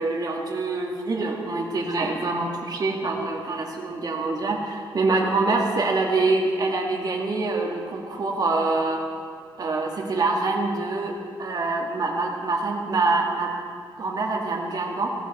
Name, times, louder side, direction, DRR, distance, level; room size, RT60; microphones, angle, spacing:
voice 1, 0.0-9.0 9.6-13.5 14.0-15.1, right 3 dB, 50° right, 0 dB, 2.0 m, -25 dB
16.5 x 13.5 x 4.3 m, 2.1 s
wide cardioid pair, 145°, 9 cm